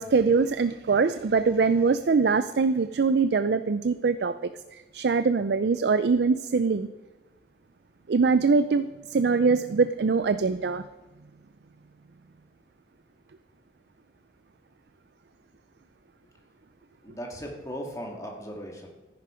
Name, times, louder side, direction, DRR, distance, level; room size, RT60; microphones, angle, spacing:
voice 1, 0.0-6.9 8.1-10.8, right 4 dB, 70° right, 12 dB, 0.4 m, -23 dB
voice 2, 17.0-18.9, equal, 20° left, 0 dB, 2.1 m, -37 dB
14.0 x 10.5 x 5.0 m, 1.1 s
head